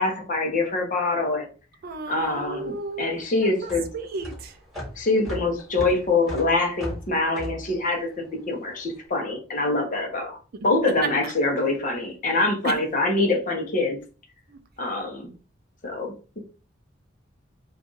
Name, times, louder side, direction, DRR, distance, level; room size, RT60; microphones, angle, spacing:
voice 1, 0.0-1.5 2.1-3.8 5.0-10.4 10.6-14.0 14.8-15.3 15.8-16.4, left 2 dB, 40° left, 0.8 m, -25 dB
voice 2, 1.8-4.6 10.5-10.7 11.0-11.1 12.6-12.8 14.5-14.6, right 4 dB, 50° right, 0.4 m, -33 dB
sound 1, 2.3-8.8, left 1 dB, ahead, 1.4 m, -38 dB
2.5 x 2.4 x 3.8 m
head